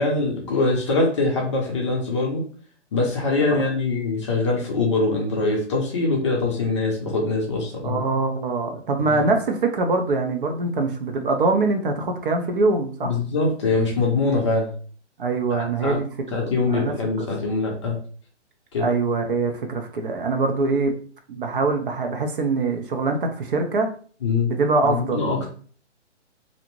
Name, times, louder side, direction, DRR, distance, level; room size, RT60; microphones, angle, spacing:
voice 1, 0.0-2.4 2.9-8.0 9.1-9.2 13.0-14.7 15.5-16.0 16.3-18.0 18.7-18.9 24.2-24.5 24.8-25.5, left 3 dB, 25° left, -1 dB, 0.5 m, -23 dB
voice 2, 7.8-13.1 15.2-17.3 18.8-21.0 21.3-23.9 24.5-25.3, right 3 dB, 50° right, 4 dB, 0.5 m, -23 dB
2.6 x 2.0 x 2.9 m, 0.44 s
hypercardioid pair, 140°, 36 cm